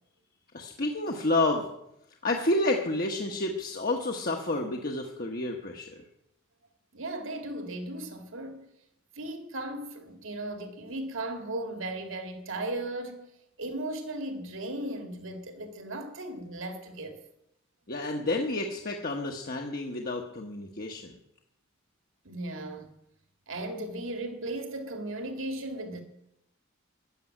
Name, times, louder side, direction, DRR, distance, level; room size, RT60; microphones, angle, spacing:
voice 1, 0.5-1.7 2.2-6.0 17.9-21.1, left 2 dB, 45° left, 1.2 m, -30 dB
voice 2, 6.9-8.7 9.2-13.2 13.6-17.2 22.2-22.9 23.5-26.0, right 1 dB, 65° right, 2.2 m, -36 dB
14.0 x 7.0 x 9.8 m
head